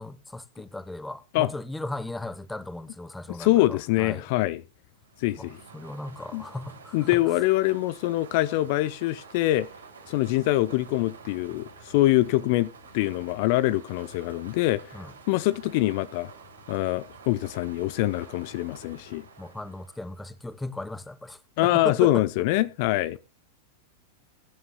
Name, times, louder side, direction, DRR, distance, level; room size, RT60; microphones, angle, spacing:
voice 1, 0.0-4.3 5.4-7.2 14.9-15.1 19.4-22.2, left 2 dB, 5° left, 1.0 m, -36 dB
voice 2, 3.3-4.6 5.2-5.6 6.3-6.4 6.9-9.7 10.1-15.0 15.3-16.3 16.7-19.2 21.6-23.2, left 17 dB, 50° left, 0.5 m, -24 dB
sound 1, 5.0-20.4, right 5 dB, 80° right, 2.9 m, -49 dB
21.5 x 9.6 x 2.2 m
figure-of-eight pair, 95°, 0 cm